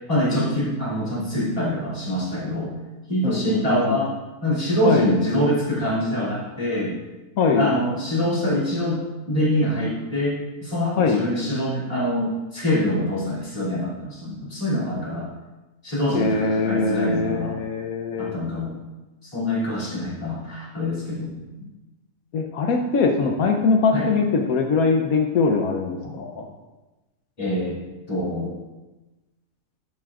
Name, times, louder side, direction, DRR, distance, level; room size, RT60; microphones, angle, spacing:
voice 1, 0.1-2.7 3.1-4.1 4.4-7.0 7.5-15.3 15.8-17.6 18.2-18.8 19.2-21.7 23.9-24.1 26.0-26.1 27.4-27.8 28.1-28.6, equal, 25° left, -7 dB, 3.0 m, -25 dB
voice 2, 3.2-4.0 4.8-5.1 7.4-7.7 11.0-11.2 16.1-18.3 22.3-26.5, left 4 dB, 85° left, 3 dB, 1.2 m, -22 dB
12.5 x 7.6 x 2.5 m, 1.1 s
omnidirectional pair, 1.5 m